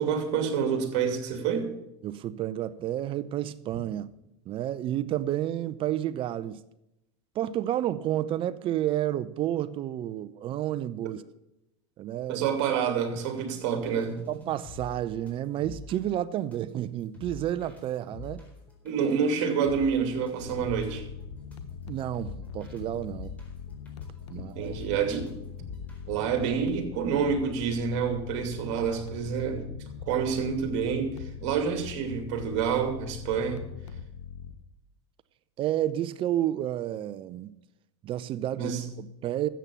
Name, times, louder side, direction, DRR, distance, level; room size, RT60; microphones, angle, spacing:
voice 1, 0.0-1.7 12.3-14.2 18.8-21.0 24.5-25.4 26.1-29.6 30.0-33.6 38.5-38.8, right 6 dB, 60° right, 2.7 m, -28 dB
voice 2, 2.0-4.1 4.5-6.6 7.3-11.2 12.0-12.5 14.3-18.4 21.9-23.4 24.3-24.7 35.6-37.5 38.0-39.5, right 12 dB, 40° right, 0.6 m, -30 dB
sound 1, 13.1-26.2, left 3 dB, 10° left, 4.4 m, -46 dB
sound 2, 20.4-34.5, left 7 dB, 85° left, 1.2 m, -42 dB
13.5 x 8.3 x 7.1 m
supercardioid pair, 115°, 14 cm